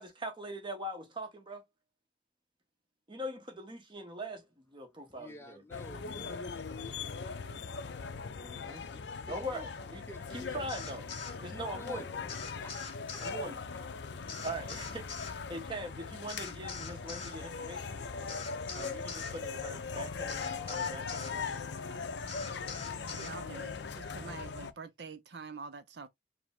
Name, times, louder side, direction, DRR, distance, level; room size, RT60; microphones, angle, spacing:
voice 1, 0.0-1.6 3.1-5.6 8.4-8.8 9.3-10.0 10.3-11.1 11.4-12.0 13.2-13.6 14.4-15.1 15.5-18.0 18.7-21.5 24.2-24.4, equal, 25° right, 1.0 m, -41 dB
voice 2, 5.1-8.2 8.9-10.6 11.5-13.2, left 1 dB, 15° left, 0.5 m, -52 dB
sound 1, 5.7-24.7, left 5 dB, 65° left, 0.5 m, -40 dB
cell-phone-vibrating, 10.7-11.4 12.3-13.4 14.3-15.4 16.3-17.4 18.3-19.4 20.3-21.4 22.3-23.4, left 5 dB, 30° left, 0.9 m, -43 dB
voice 3, 23.1-26.1, right 4 dB, 60° right, 0.5 m, -46 dB
4.8 x 2.1 x 3.5 m
head